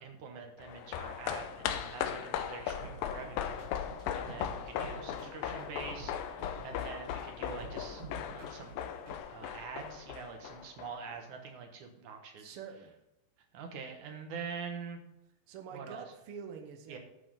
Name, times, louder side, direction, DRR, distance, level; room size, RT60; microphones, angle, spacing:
voice 1, 0.0-3.6 4.1-8.0 8.3-8.8 9.3-12.6 13.5-15.0 15.7-16.0 16.9-17.0, right 5 dB, 65° right, 4 dB, 2.4 m, -45 dB
sound 1, 0.6-11.2 11.4-11.5, left 9 dB, 80° left, 2.4 m, -38 dB
sound 2, 2.8-9.2, right 4 dB, 40° right, 3.3 m, -49 dB
voice 2, 12.4-12.9 15.5-17.0, right 6 dB, 80° right, 5 dB, 1.2 m, -46 dB
11.0 x 5.7 x 5.3 m, 0.86 s
omnidirectional pair, 4.2 m